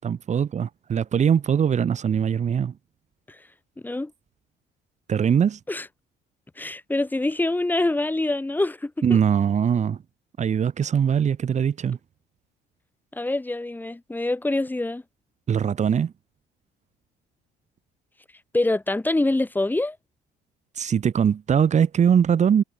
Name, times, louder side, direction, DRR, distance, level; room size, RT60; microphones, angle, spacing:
voice 1, 0.0-2.7 5.1-5.6 9.0-10.0 10.4-12.0 15.5-16.1 20.8-22.6, right 8 dB, 45° right, 5.8 m, -21 dB
voice 2, 6.6-9.2 13.1-15.0 18.5-20.0, left 2 dB, 10° left, 4.5 m, -25 dB
cardioid pair, 110°, 17 cm